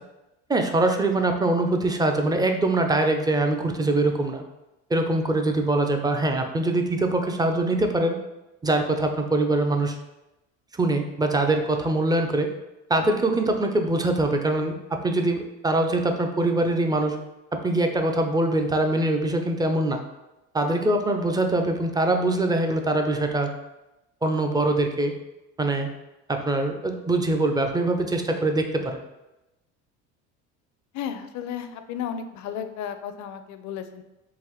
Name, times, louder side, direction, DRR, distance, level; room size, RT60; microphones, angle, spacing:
voice 1, 0.5-4.4 4.9-8.2 8.6-10.0 10.7-12.5 12.9-17.2 17.5-20.0 20.5-23.5 24.2-25.1 25.6-25.9 26.3-29.0, right 2 dB, 10° right, 4 dB, 0.4 m, -23 dB
voice 2, 30.9-34.0, left 8 dB, 55° left, 9 dB, 0.5 m, -33 dB
3.9 x 2.5 x 3.0 m, 0.97 s
supercardioid pair, 85°, 34 cm